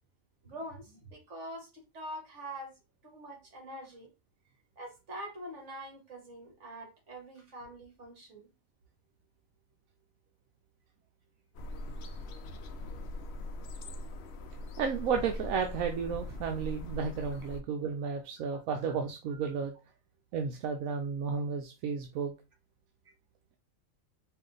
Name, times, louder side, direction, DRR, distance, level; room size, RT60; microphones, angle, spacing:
voice 1, 0.4-2.7 3.0-4.1 4.8-8.5 22.2-22.3, right 1 dB, 60° right, 1.8 m, -44 dB
sound 1, 11.5-17.6, left 1 dB, 60° left, 0.7 m, -41 dB
voice 2, 14.8-19.7 20.3-22.3, right 6 dB, 80° right, 1.1 m, -33 dB
4.7 x 2.5 x 3.8 m
omnidirectional pair, 1.5 m